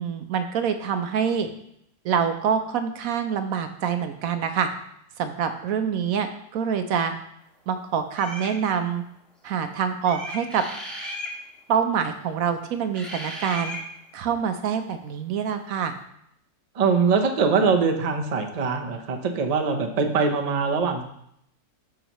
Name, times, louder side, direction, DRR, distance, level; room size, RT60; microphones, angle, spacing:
voice 1, 0.0-1.5 2.0-4.7 5.2-7.1 7.7-9.0 9.4-10.6 11.7-13.8 14.1-15.9, right 7 dB, 70° right, 8 dB, 1.0 m, -26 dB
sound 1, 8.1-8.5 10.0-11.4 12.9-13.8, left 1 dB, ahead, 1.5 m, -35 dB
voice 2, 16.7-21.0, right 5 dB, 35° right, 4 dB, 0.6 m, -22 dB
9.7 x 6.4 x 3.0 m, 0.73 s
omnidirectional pair, 1.6 m